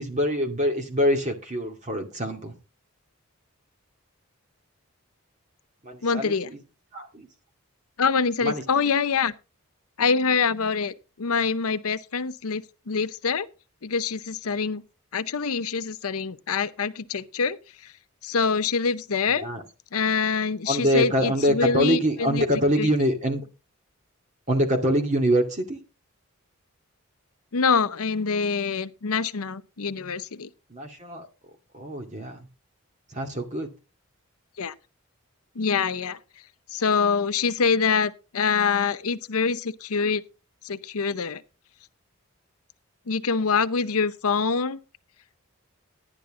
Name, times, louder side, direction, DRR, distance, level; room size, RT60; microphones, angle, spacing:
voice 1, 0.0-2.5 5.8-6.6 6.9-7.3 8.4-8.6 19.4-19.6 20.7-23.4 24.5-25.8 30.7-31.3 31.7-32.5 33.1-33.7, equal, 30° right, 2.3 m, -25 dB
voice 2, 6.0-6.5 8.0-9.3 10.0-13.5 13.8-14.8 15.1-17.6 17.8-17.9 18.2-19.5 19.9-22.4 22.8-22.9 27.5-30.5 34.6-34.7 35.6-36.2 36.7-40.2 40.6-41.4 43.1-44.8, left 5 dB, 80° left, 0.7 m, -25 dB
11.5 x 11.0 x 3.7 m
head